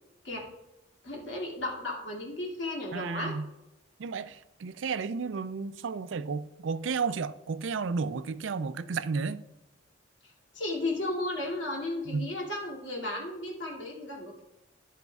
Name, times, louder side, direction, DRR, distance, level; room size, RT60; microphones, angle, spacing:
voice 1, 1.0-3.3 10.5-14.4, left 2 dB, 80° left, 2.4 m, -34 dB
voice 2, 2.9-3.5 4.0-9.4 12.1-12.3, right 5 dB, 85° right, 0.4 m, -32 dB
11.0 x 9.1 x 2.4 m
head